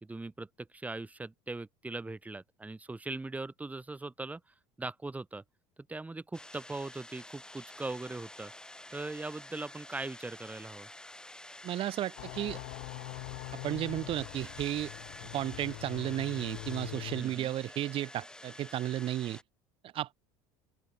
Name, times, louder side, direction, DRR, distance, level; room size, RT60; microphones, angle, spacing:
voice 1, 0.0-4.4 4.8-5.4 5.9-8.5 8.9-10.9 17.2-17.5, right 2 dB, 10° right, 3.6 m, -40 dB
sound 1, 6.3-19.4, left 1 dB, 5° left, 5.6 m, -49 dB
voice 2, 11.6-12.6 13.5-14.9 15.3-19.4 19.9-20.1, right 13 dB, 45° right, 0.9 m, -33 dB
sound 2, 12.2-17.2, left 40 dB or more, 75° left, 2.0 m, -43 dB
open air
supercardioid pair, 100°, 12 cm